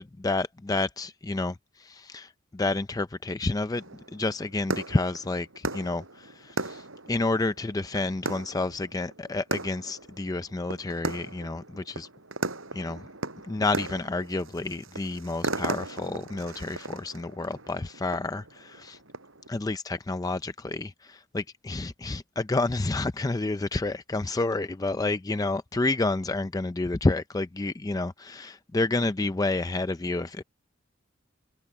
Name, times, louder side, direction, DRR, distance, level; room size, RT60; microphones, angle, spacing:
voice 1, 0.0-12.1 12.7-13.1 13.4-19.0 19.5-30.4, left 2 dB, 20° left, 0.4 m, -30 dB
sound 1, 3.7-19.5, right 2 dB, 85° right, 7.3 m, -37 dB
head